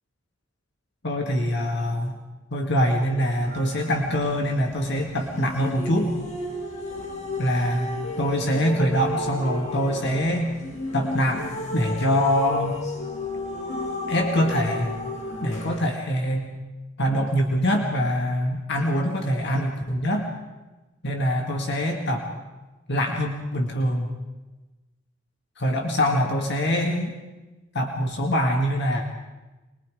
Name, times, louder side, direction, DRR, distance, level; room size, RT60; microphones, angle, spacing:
voice 1, 1.0-2.2 2.5-6.1 7.4-10.5 10.9-11.5 11.7-12.8 14.1-14.9 15.4-16.6 17.0-20.3 21.0-22.3 22.9-24.1 25.6-27.1 27.7-29.0, equal, 60° left, 2 dB, 2.1 m, -24 dB
sound 1, 3.4-15.8, left 1 dB, 35° left, 2.4 m, -33 dB
24.5 x 21.5 x 5.0 m, 1.1 s
head